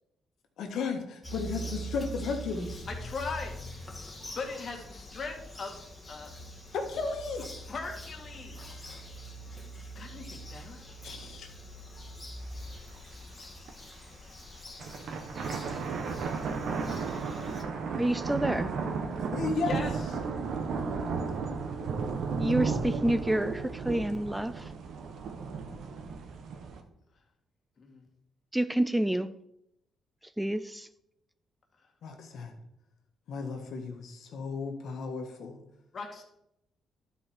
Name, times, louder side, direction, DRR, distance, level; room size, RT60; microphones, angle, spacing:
voice 1, 0.6-2.8 6.7-7.5 8.5-8.6 8.9-9.0 11.0-11.5 19.2-19.8 32.0-32.5 33.3-35.6, left 4 dB, 70° left, 1.6 m, -34 dB
Bird vocalization bird call bird song, 1.2-17.6, right 1 dB, 20° left, 1.8 m, -44 dB
voice 2, 2.9-3.6 4.3-5.8 6.1-6.3 7.7-8.9 10.0-10.8 19.7-19.9 27.8-28.1 35.9-36.2, left 4 dB, 45° left, 2.0 m, -39 dB
sound 1, 12.5-12.6 13.0-13.1 13.5-13.9 14.7-26.8, right 5 dB, 70° right, 1.1 m, -34 dB
voice 3, 18.0-18.7 22.4-24.7 28.5-29.3 30.4-30.9, right 1 dB, 5° right, 0.4 m, -28 dB
11.5 x 4.8 x 4.4 m
cardioid pair, 90°, 0 cm